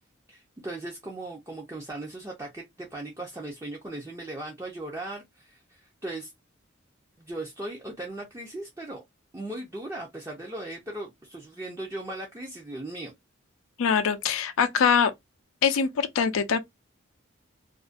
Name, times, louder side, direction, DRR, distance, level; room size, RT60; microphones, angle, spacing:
voice 1, 0.3-6.3 7.2-9.0 9.3-13.1, right 2 dB, 15° right, 0.4 m, -38 dB
voice 2, 13.8-15.1 15.6-16.6, left 6 dB, 80° left, 0.4 m, -23 dB
2.4 x 2.1 x 2.4 m
head